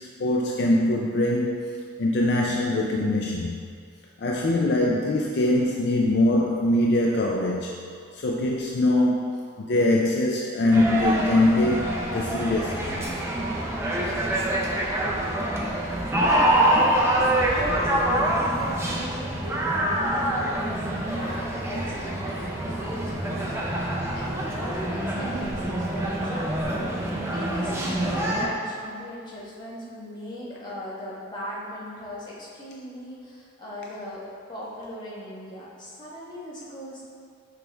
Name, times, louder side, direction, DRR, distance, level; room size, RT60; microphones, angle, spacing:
voice 1, 0.0-3.7 4.2-7.8 8.1-13.0, left 1 dB, 55° left, -1 dB, 0.4 m, -23 dB
sound 1, 10.7-28.5, right 1 dB, 15° right, 0.5 m, -26 dB
voice 2, 17.1-37.0, equal, 20° left, -7 dB, 1.2 m, -39 dB
6.1 x 4.7 x 3.4 m, 2.2 s
head